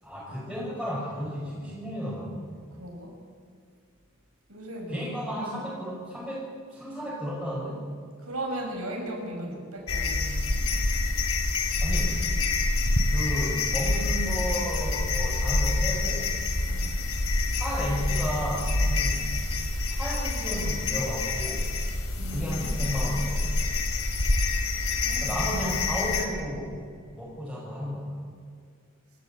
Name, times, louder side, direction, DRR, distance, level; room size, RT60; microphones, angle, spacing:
voice 1, 0.0-2.6 4.9-7.8 11.8-12.2 13.1-16.3 17.5-19.3 19.9-21.7 22.3-23.6 24.3-24.4 25.2-26.8 27.1-28.3, equal, ahead, -8 dB, 5.4 m, -33 dB
voice 2, 2.8-3.1 4.5-5.0 5.4-5.6 8.2-10.7 16.7-17.3 22.2-22.9 25.0-25.4, right 1 dB, 80° right, 1 dB, 6.6 m, -37 dB
sound 1, 9.9-26.2, left 2 dB, 80° left, 3.1 m, -27 dB
27.0 x 14.5 x 8.6 m, 2.2 s
head